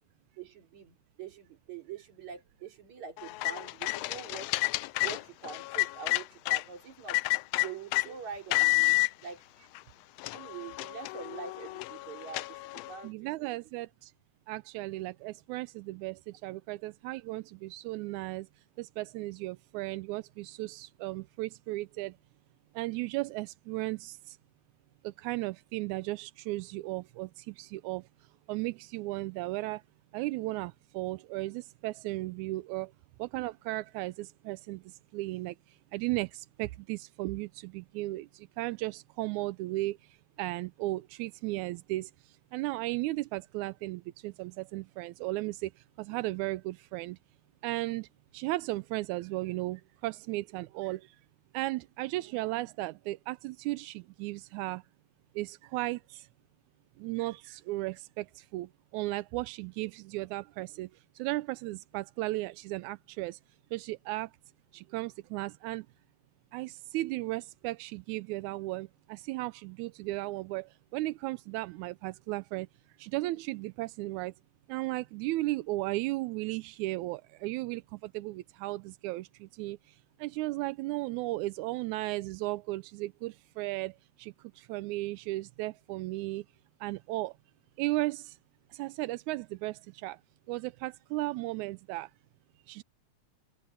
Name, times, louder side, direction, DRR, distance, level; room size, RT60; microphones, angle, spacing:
voice 1, 0.4-4.5 5.0-7.2 7.6-9.4 10.3-13.6, right 6 dB, 75° right, 5.0 m, -44 dB
sound 1, 3.2-6.6 7.1-8.1 8.5-9.1 9.8-9.9 10.2-13.0, left 24 dB, 80° left, 1.5 m, -30 dB
voice 2, 13.0-14.1 14.5-18.5 18.8-22.1 22.8-24.4 25.0-28.0 28.5-29.8 30.1-32.9 33.2-34.8 35.1-35.6 35.9-40.0 40.4-42.1 42.5-45.7 46.0-47.2 47.6-48.1 48.3-51.0 51.5-54.8 55.4-56.3 57.0-58.7 58.9-60.9 61.2-63.4 63.7-64.3 64.7-65.8 66.5-70.7 70.9-72.7 73.0-74.3 74.7-79.8 80.2-83.9 84.2-86.4 86.8-87.3 87.8-88.4 88.7-90.2 90.5-92.1 92.7-92.8, right 19 dB, 90° right, 2.0 m, -35 dB
omnidirectional pair, 3.3 m